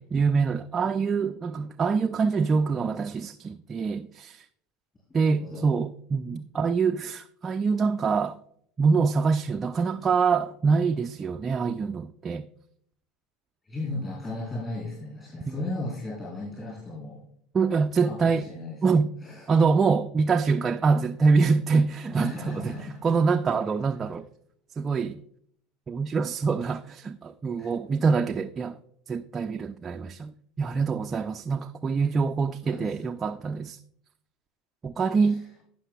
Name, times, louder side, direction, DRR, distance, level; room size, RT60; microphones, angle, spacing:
voice 1, 0.1-4.4 5.1-8.4 8.8-12.5 15.5-15.6 17.5-18.5 18.8-19.1 19.5-22.7 23.0-24.2 24.8-25.2 25.9-28.8 29.1-30.3 30.6-33.8 34.8-35.4, right 5 dB, 25° right, 0.4 m, -25 dB
voice 2, 13.6-17.2 18.0-18.8 19.2-19.5 20.5-20.6 22.2-23.0 27.6-27.7 32.6-33.1 35.2-35.4, left 2 dB, 20° left, 3.8 m, -36 dB
16.0 x 5.6 x 2.3 m
figure-of-eight pair, 70°, 0 cm